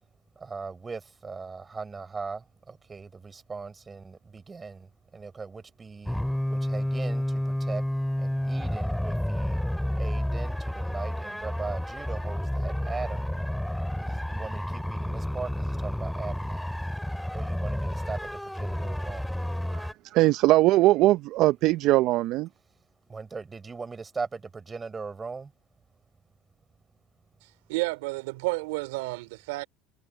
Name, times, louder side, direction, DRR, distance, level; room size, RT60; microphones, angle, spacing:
voice 1, 0.4-2.4 2.7-4.9 5.1-6.2 6.5-7.8 8.2-9.6 10.0-13.3 14.0-16.7 17.3-18.2 18.4-19.2 23.1-25.5, right 4 dB, 25° right, 4.9 m, -39 dB
sound 1, 6.1-19.9, equal, 5° left, 2.6 m, -30 dB
voice 2, 20.1-22.5, right 17 dB, 60° right, 0.6 m, -21 dB
voice 3, 27.7-29.7, right 24 dB, 80° right, 4.1 m, -31 dB
hypercardioid pair, 85°, 0 cm